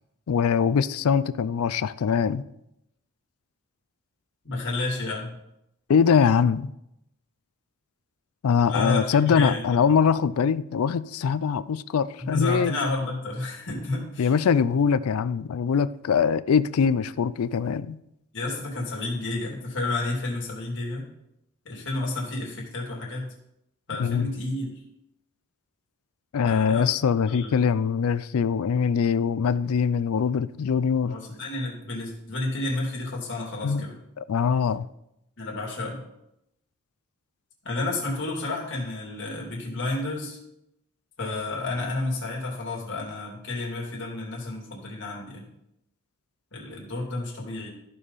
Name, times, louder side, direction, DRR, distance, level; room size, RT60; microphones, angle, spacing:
voice 1, 0.3-2.4 5.9-6.7 8.4-12.7 14.2-18.0 24.0-24.3 26.3-31.1 33.6-33.9 34.2-34.9, left 6 dB, 70° left, 0.4 m, -23 dB
voice 2, 4.4-5.3 8.7-9.9 12.2-14.3 18.3-21.1 21.6-23.3 23.9-24.7 26.4-26.9 27.3-27.5 31.0-34.0 35.4-36.0 37.6-40.4 41.2-45.4 46.5-47.7, left 2 dB, 55° left, 2.7 m, -31 dB
14.0 x 5.5 x 4.1 m
head